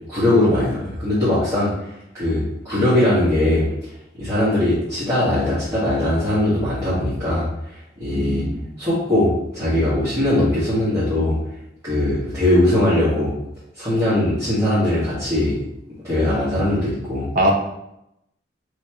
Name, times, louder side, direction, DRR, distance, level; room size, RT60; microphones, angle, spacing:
voice 1, 0.1-1.9 2.1-3.6 4.2-7.5 8.0-8.4 8.8-11.4 11.8-13.3 13.7-15.6 16.0-17.3, left 1 dB, 20° right, -13 dB, 1.3 m, -20 dB
voice 2, 8.1-8.6 17.3-17.5, equal, 50° right, 0 dB, 0.7 m, -21 dB
3.2 x 2.8 x 4.3 m, 0.85 s
head